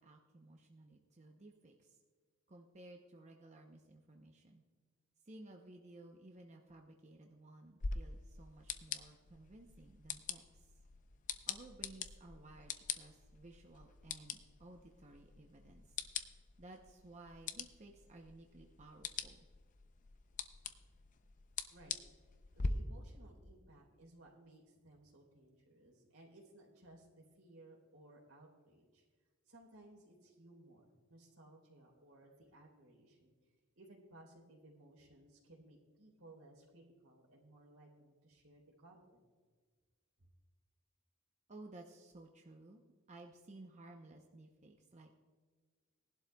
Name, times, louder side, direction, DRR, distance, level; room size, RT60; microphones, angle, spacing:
voice 1, 0.0-2.0 2.5-4.6 5.3-10.7 11.5-16.0 16.6-19.4 41.5-42.8 43.1-45.1, right 2 dB, 35° right, 2 dB, 0.7 m, -57 dB
sound 1, 7.8-22.7, left 5 dB, 35° left, 0.5 m, -45 dB
voice 2, 22.5-29.0 29.5-33.3 33.7-39.2, right 1 dB, 85° right, -1 dB, 3.4 m, -60 dB
19.5 x 11.5 x 2.3 m, 1.5 s
head